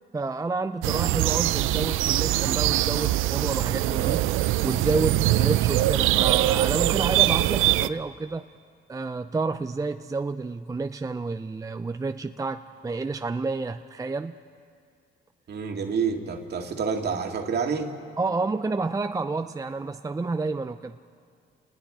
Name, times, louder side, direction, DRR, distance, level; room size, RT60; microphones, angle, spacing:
voice 1, 0.1-4.2 4.6-8.4 8.9-14.3 18.2-21.0, right 3 dB, 15° right, 8 dB, 0.5 m, -29 dB
sound 1, 0.8-7.9, right 15 dB, 90° right, 0.5 m, -23 dB
voice 2, 15.5-17.9, right 5 dB, 55° right, 3 dB, 2.1 m, -28 dB
29.5 x 20.0 x 4.9 m, 2.2 s
cardioid pair, 90°, 20 cm